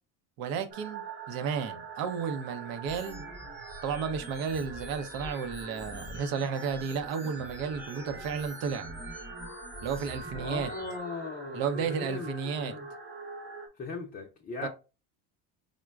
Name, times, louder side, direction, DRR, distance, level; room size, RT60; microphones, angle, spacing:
voice 1, 0.4-3.2 3.8-8.9 9.8-10.7 11.5-12.7 14.6-14.7, right 6 dB, 65° right, 0.7 m, -33 dB
sound 1, 0.7-13.7, right 5 dB, 30° right, 1.0 m, -44 dB
sound 2, 2.9-11.0, left 1 dB, 5° right, 0.8 m, -45 dB
voice 2, 10.3-12.9 13.8-14.7, left 3 dB, 25° left, 0.5 m, -39 dB
5.0 x 2.1 x 2.3 m
supercardioid pair, 100°, 38 cm